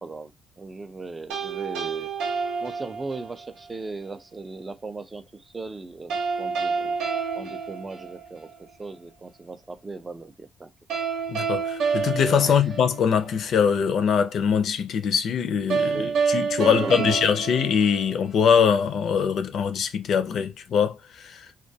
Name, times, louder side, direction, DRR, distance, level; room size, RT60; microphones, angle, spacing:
voice 1, 0.0-2.1 2.6-10.7 12.4-12.7 15.9-16.2 16.7-17.2, right 3 dB, 20° right, 0.3 m, -38 dB
sound 1, 1.3-3.5 6.1-8.5 10.9-13.4 15.7-18.5, right 5 dB, 80° right, 0.7 m, -28 dB
voice 2, 11.3-21.5, left 7 dB, 55° left, 0.4 m, -23 dB
2.2 x 2.2 x 2.6 m
cardioid pair, 120°, 0 cm